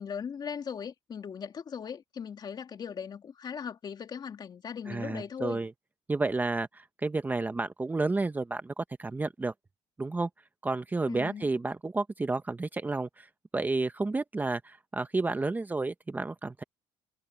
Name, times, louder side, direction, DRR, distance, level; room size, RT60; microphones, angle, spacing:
voice 1, 0.0-5.6 11.1-11.5, left 7 dB, 40° left, 2.8 m, -39 dB
voice 2, 4.9-5.7 6.1-9.5 10.0-10.3 10.6-13.3 13.5-16.6, right 3 dB, 15° right, 0.9 m, -31 dB
cardioid pair, 105°, 11 cm